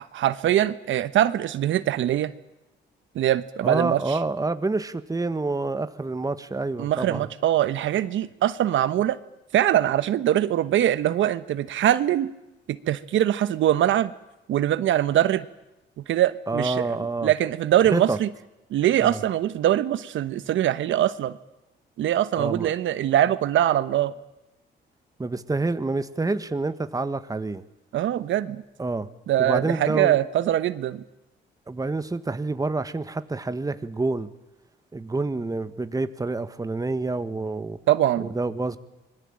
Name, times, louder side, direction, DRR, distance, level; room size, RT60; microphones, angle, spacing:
voice 1, 0.0-2.3 3.1-4.2 6.8-9.2 9.5-12.3 12.7-14.1 14.5-15.4 16.1-17.0 17.2-18.3 18.7-21.3 22.0-24.1 27.9-28.6 29.3-31.0 37.9-38.3, right 12 dB, 75° right, 13 dB, 1.2 m, -22 dB
voice 2, 3.6-7.3 16.5-17.3 17.9-18.2 19.0-19.2 22.3-22.7 25.2-27.6 28.8-29.1 29.4-30.2 31.7-34.3 34.9-37.8 38.2-38.8, right 3 dB, 20° right, 11 dB, 1.6 m, -27 dB
25.5 x 21.5 x 8.9 m, 0.93 s
cardioid pair, 90°, 20 cm